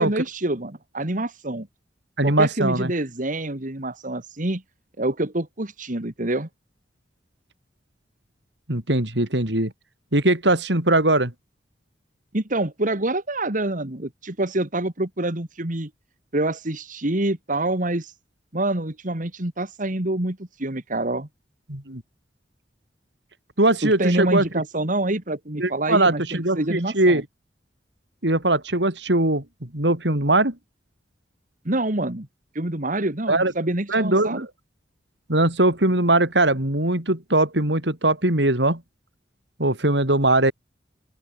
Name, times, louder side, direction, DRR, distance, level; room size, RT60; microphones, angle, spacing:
voice 1, 0.0-1.7 2.2-4.6 5.0-6.5 12.3-15.9 16.3-18.1 18.5-21.3 23.8-27.2 31.6-32.3 32.5-34.5, right 1 dB, 50° right, 2.4 m, -26 dB
voice 2, 2.2-2.9 8.7-9.7 10.1-11.3 21.7-22.0 23.6-24.5 25.6-27.2 28.2-29.4 29.7-30.5 33.3-33.5 33.9-34.4 35.3-38.8 39.6-40.5, right 2 dB, 75° right, 4.7 m, -20 dB
head